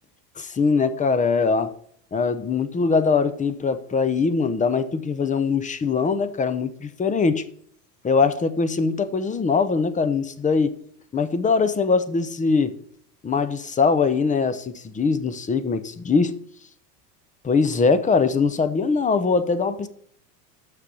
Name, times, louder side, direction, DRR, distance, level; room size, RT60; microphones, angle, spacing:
voice 1, 0.4-1.7 2.1-7.4 8.0-10.7 11.1-12.7 13.2-16.3 17.4-19.9, left 4 dB, 15° left, 0.7 m, -22 dB
6.6 x 6.6 x 6.9 m
supercardioid pair, 115°, 50 cm